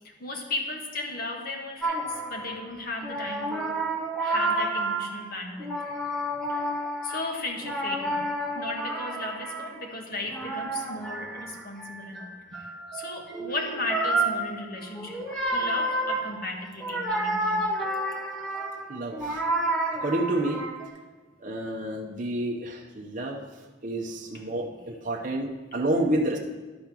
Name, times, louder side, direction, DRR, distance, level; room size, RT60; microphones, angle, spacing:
voice 1, 0.2-3.8 4.2-5.7 6.5-6.7 7.0-17.7, left 2 dB, 55° left, 1 dB, 1.5 m, -35 dB
sound 1, 1.8-2.7 3.0-5.3 5.6-9.9 10.2-20.9, right 1 dB, 5° left, 1.6 m, -30 dB
voice 2, 18.9-19.4 20.0-20.6 21.4-23.4 23.8-26.4, right 1 dB, 45° right, 0 dB, 0.8 m, -29 dB
11.0 x 5.2 x 6.0 m, 1.3 s
head